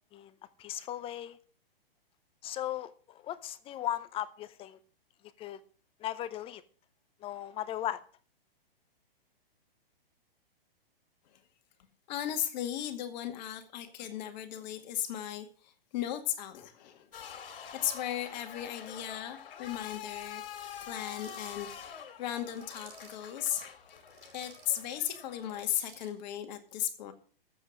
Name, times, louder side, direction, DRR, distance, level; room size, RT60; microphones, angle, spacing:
voice 1, 0.6-1.4 2.4-4.8 5.4-5.6 6.0-6.6 7.2-8.0, left 12 dB, 20° left, 0.7 m, -37 dB
voice 2, 12.1-17.1 17.4-20.4 20.8-23.7 24.3-27.1, left 11 dB, 45° left, 2.1 m, -36 dB
sound 1, 17.1-25.7, left 9 dB, 65° left, 2.7 m, -46 dB
sound 2, 21.0-21.7 22.4-23.3 24.0-24.7 25.4-26.2, right 6 dB, 45° right, 5.5 m, -55 dB
14.0 x 7.7 x 6.4 m
hypercardioid pair, 130°, 30 cm